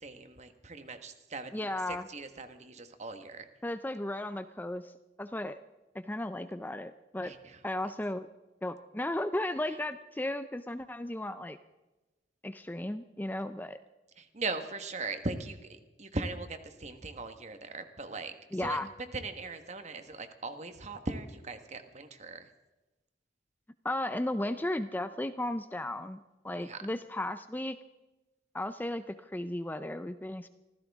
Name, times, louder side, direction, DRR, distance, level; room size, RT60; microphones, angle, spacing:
voice 1, 0.0-1.6 1.9-3.5 7.2-7.6 14.2-18.3 18.6-18.8 19.1-22.5 26.6-26.8, right 3 dB, 40° right, 8 dB, 1.4 m, -39 dB
voice 2, 1.5-2.1 3.6-4.9 5.2-5.6 5.9-7.3 7.6-8.3 8.6-11.6 12.4-13.8 18.5-18.9 23.8-27.8 28.5-30.5, left 1 dB, 10° left, 11 dB, 0.5 m, -35 dB
25.5 x 15.5 x 3.6 m, 1.1 s
head